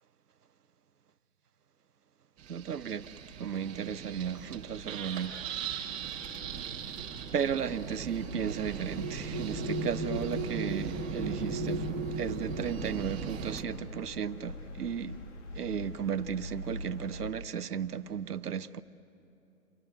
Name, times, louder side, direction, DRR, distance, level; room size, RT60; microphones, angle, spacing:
sound 1, 2.4-13.6, right 7 dB, 15° right, 1.9 m, -39 dB
voice 1, 2.5-3.1 3.4-5.4 7.3-15.2 15.6-18.8, right 7 dB, 80° right, 1.0 m, -35 dB
sound 2, 6.2-15.1 16.0-16.2 16.5-17.1, right 1 dB, 15° left, 0.9 m, -39 dB
sound 3, 8.2-17.3, left 1 dB, 50° left, 1.9 m, -45 dB
29.0 x 23.5 x 7.9 m
hypercardioid pair, 145°, 45 cm